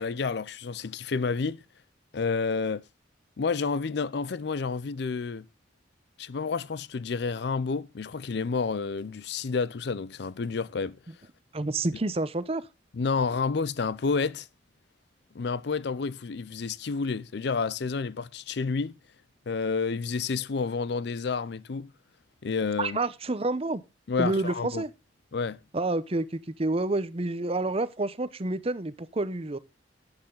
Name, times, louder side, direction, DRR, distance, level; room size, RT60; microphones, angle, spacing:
voice 1, 0.0-1.6 2.1-2.8 3.4-5.5 6.2-11.0 12.9-14.5 15.3-19.0 19.5-21.9 22.4-23.0 24.1-24.8 25.3-25.6, left 4 dB, 60° left, 0.5 m, -30 dB
voice 2, 11.5-12.6 22.8-23.8 24.2-24.9 25.7-29.6, right 2 dB, 30° right, 0.7 m, -29 dB
11.5 x 8.9 x 3.8 m
head